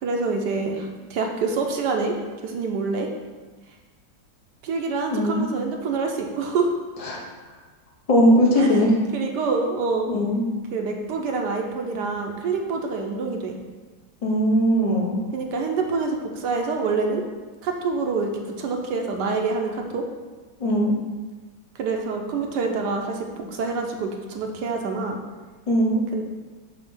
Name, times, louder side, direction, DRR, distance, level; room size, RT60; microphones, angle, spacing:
voice 1, 0.0-2.1 2.4-3.1 4.6-6.7 8.6-8.8 9.1-10.1 10.7-13.6 15.3-17.2 17.6-18.3 18.6-20.0 21.7-25.2 26.1-26.2, right 4 dB, 75° right, 2 dB, 1.2 m, -26 dB
voice 2, 5.1-5.4 7.0-7.2 8.1-8.9 10.1-10.4 14.2-15.2 20.6-21.0 25.7-26.1, equal, 40° left, -1 dB, 0.5 m, -19 dB
7.1 x 2.8 x 5.4 m, 1.3 s
omnidirectional pair, 1.9 m